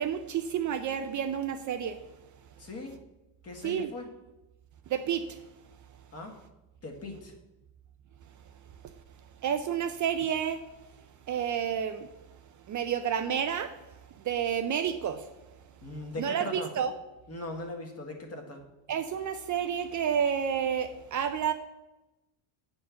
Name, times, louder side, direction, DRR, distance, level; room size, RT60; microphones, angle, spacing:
voice 1, 0.0-2.0 3.6-3.9 4.9-5.3 9.4-10.6 11.3-12.1 12.7-13.7 14.3-15.3 16.2-16.9 18.9-21.5, right 8 dB, 40° right, 8 dB, 0.4 m, -30 dB
voice 2, 2.6-2.9 3.4-4.1 6.1-6.3 6.8-7.3 15.8-16.7 17.3-18.6, left 2 dB, 30° left, 3 dB, 1.4 m, -39 dB
8.8 x 4.4 x 6.8 m, 1.0 s
cardioid pair, 155°, 50 cm